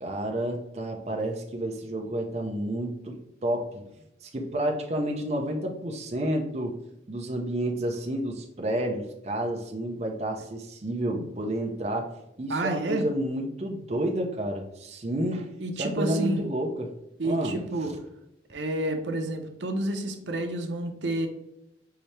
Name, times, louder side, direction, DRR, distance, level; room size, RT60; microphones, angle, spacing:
voice 1, 0.0-3.8 4.2-6.8 7.1-12.1 12.4-15.5 15.8-16.9 17.2-18.0, right 1 dB, 35° right, 1 dB, 0.6 m, -30 dB
voice 2, 12.5-13.1 15.6-16.5 17.2-17.9 18.5-21.3, right 1 dB, 80° right, 5 dB, 0.7 m, -29 dB
5.7 x 2.7 x 3.2 m, 0.85 s
head